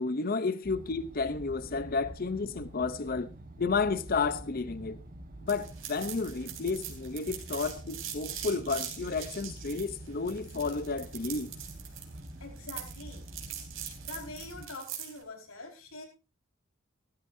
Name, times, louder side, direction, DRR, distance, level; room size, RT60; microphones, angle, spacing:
voice 1, 0.0-3.3 3.6-5.0 5.4-11.5, left 4 dB, 45° left, 0.6 m, -32 dB
sound 1, 0.6-14.6, right 1 dB, 40° right, 1.4 m, -47 dB
sound 2, 5.5-15.2, right 10 dB, 65° right, 3.6 m, -42 dB
voice 2, 12.4-13.2 14.0-16.0, left 2 dB, 85° left, 4.8 m, -44 dB
17.0 x 13.5 x 2.7 m
head